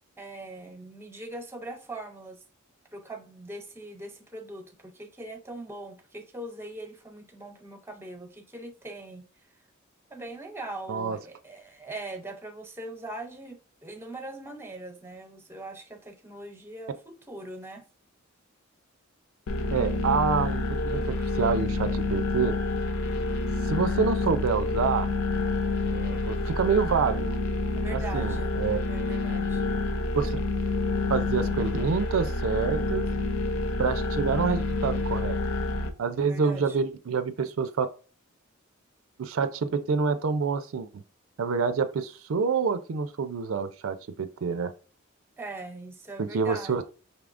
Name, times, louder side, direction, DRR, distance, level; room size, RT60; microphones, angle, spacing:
voice 1, 0.2-2.4 2.9-9.3 10.1-17.9 27.7-28.5 28.8-29.7 36.2-36.8 45.4-46.8, right 2 dB, 10° right, 0.6 m, -41 dB
sound 1, 19.5-35.9, left 2 dB, 75° left, 0.6 m, -28 dB
voice 2, 19.7-22.5 23.6-25.1 25.9-27.3 27.9-28.8 30.1-30.4 31.1-33.0 33.8-35.4 36.0-37.9 39.2-41.0 41.4-44.7 46.2-46.8, right 5 dB, 75° right, 0.4 m, -27 dB
5.4 x 3.5 x 2.4 m
head